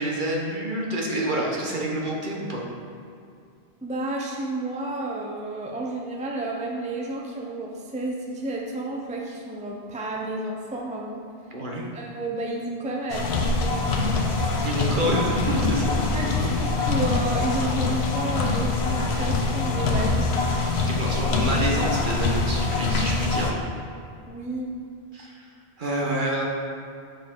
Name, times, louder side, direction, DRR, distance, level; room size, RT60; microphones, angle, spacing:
voice 1, 0.0-2.6 11.5-11.8 14.6-16.1 16.4-16.6 20.9-23.6 25.1-25.4 25.8-26.4, right 1 dB, 55° right, -2 dB, 1.2 m, -28 dB
voice 2, 3.8-11.2 11.9-14.2 16.1-20.4 24.3-24.7, right 2 dB, 10° right, -1 dB, 0.5 m, -31 dB
sound 1, 13.1-23.5, left 3 dB, 90° left, 1.0 m, -24 dB
7.4 x 5.2 x 3.7 m, 2.4 s
omnidirectional pair, 1.1 m